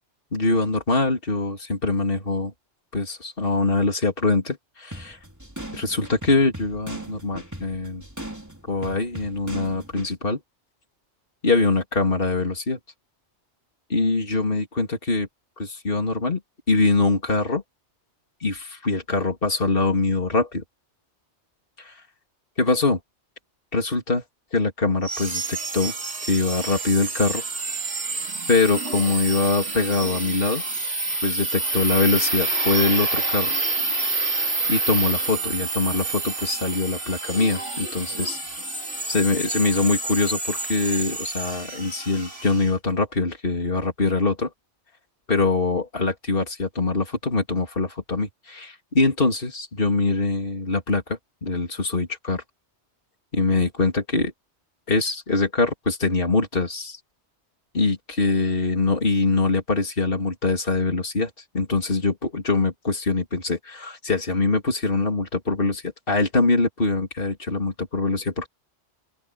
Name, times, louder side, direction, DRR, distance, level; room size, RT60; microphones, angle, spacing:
voice 1, 0.3-2.5 2.9-5.2 5.7-8.0 8.7-10.4 11.4-12.8 13.9-15.3 15.6-16.4 16.7-17.6 18.4-20.6 21.8-22.0 22.6-23.0 23.7-24.2 24.5-25.9 26.3-27.4 28.5-30.6 31.2-33.6 34.7-38.4 39.1-44.5 45.3-52.4 53.3-54.3 54.9-57.0 57.7-68.5, left 3 dB, 50° left, 3.6 m, -23 dB
sound 1, 4.9-10.1, right 1 dB, 15° right, 3.5 m, -38 dB
sound 2, 25.0-42.7, right 3 dB, 90° right, 3.5 m, -28 dB
open air
omnidirectional pair, 1.2 m